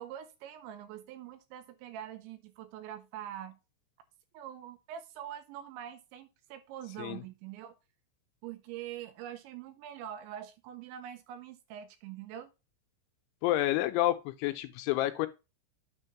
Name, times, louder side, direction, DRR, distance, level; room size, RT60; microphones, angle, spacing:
voice 1, 0.0-3.6 4.3-7.8 8.4-12.5, right 10 dB, 80° right, 2.8 m, -44 dB
voice 2, 13.4-15.3, left 15 dB, 80° left, 2.9 m, -29 dB
9.1 x 3.4 x 5.8 m
omnidirectional pair, 5.7 m